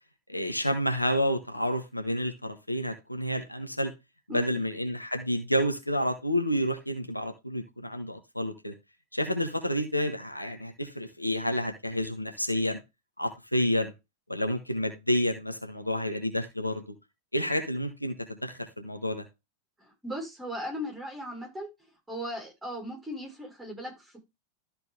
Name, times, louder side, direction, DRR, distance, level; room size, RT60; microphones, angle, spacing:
voice 1, 0.3-3.9 4.3-8.7 9.1-12.8 13.2-13.9 14.3-16.9 17.3-19.2, equal, 85° left, 1.4 m, -29 dB
voice 2, 4.3-4.6 19.8-21.7 22.1-24.2, equal, 5° right, 5.7 m, -37 dB
13.5 x 4.5 x 3.6 m
figure-of-eight pair, 90°, 0 cm